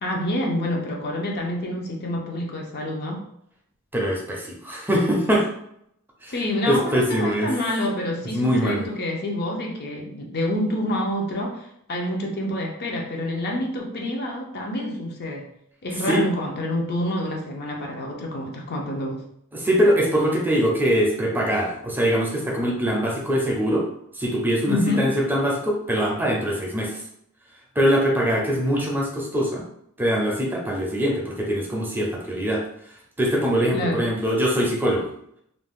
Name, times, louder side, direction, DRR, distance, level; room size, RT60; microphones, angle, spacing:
voice 1, 0.0-3.3 6.3-15.5 15.8-19.2 24.7-25.1 33.7-34.0, left 1 dB, 50° left, 0 dB, 0.5 m, -27 dB
voice 2, 3.9-5.5 6.2-6.3 6.6-7.5 8.3-8.9 16.1-16.2 19.5-23.9 24.1-27.0 27.8-29.6 30.0-32.6 33.2-35.1, equal, 10° right, -2 dB, 0.5 m, -22 dB
2.6 x 2.1 x 3.5 m, 0.72 s
head